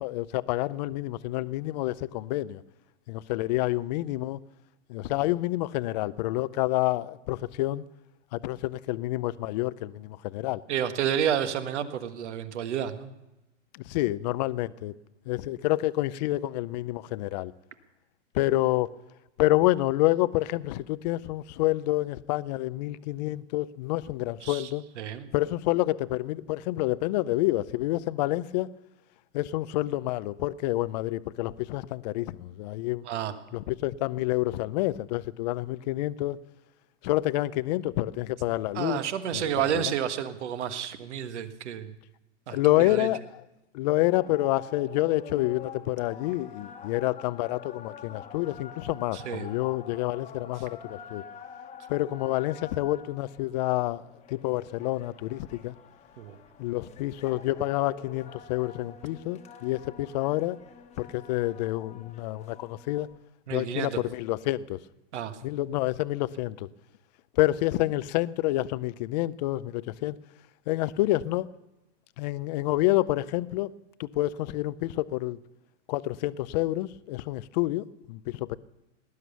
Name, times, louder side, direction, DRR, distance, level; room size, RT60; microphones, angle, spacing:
voice 1, 0.0-2.6 3.1-4.4 4.9-7.8 8.3-10.6 13.7-14.9 15.3-17.5 18.3-18.9 19.4-24.8 25.3-28.7 29.3-33.0 33.5-36.4 37.0-39.0 39.3-39.9 42.5-43.2 43.7-51.2 51.9-54.0 54.3-55.7 56.6-60.6 61.0-63.1 63.5-64.8 65.4-66.7 67.4-70.2 70.7-71.5 72.2-73.7 74.0-75.4 75.9-78.6, left 17 dB, 35° left, 0.5 m, -28 dB
voice 2, 10.7-13.1 24.4-24.7 25.0-25.3 33.0-33.3 38.7-41.9 42.5-43.1 49.1-49.5 56.2-56.4 63.5-64.0 65.1-65.4, right 9 dB, 70° right, 1.6 m, -30 dB
sound 1, 44.0-63.2, left 7 dB, 20° left, 1.3 m, -47 dB
19.0 x 11.0 x 6.9 m
hypercardioid pair, 145°, 36 cm